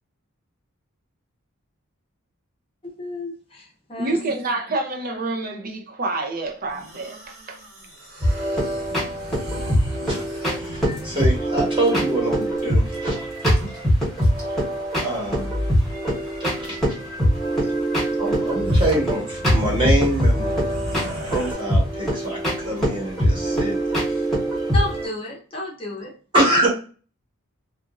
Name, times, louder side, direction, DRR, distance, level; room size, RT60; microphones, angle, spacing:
voice 1, 2.8-4.2 24.7-26.1, left 2 dB, 25° left, 0.6 m, -32 dB
voice 2, 4.0-7.6, right 2 dB, 40° right, 0.5 m, -27 dB
sound 1, 6.7-11.4 12.9-13.0 13.2-13.8 14.2-14.7 15.2-16.4 17.5-17.6 18.1-18.2 18.5-21.5, equal, 90° right, 1.4 m, -33 dB
sound 2, 8.2-25.1, equal, ahead, 1.1 m, -23 dB
voice 3, 9.3-13.3 14.2-14.6 15.0-15.5 16.2-17.2 17.6-17.7 18.2-20.5 20.9-23.7 24.0-24.3 26.3-26.7, right 1 dB, 25° right, 1.1 m, -26 dB
2.8 x 2.5 x 2.4 m
head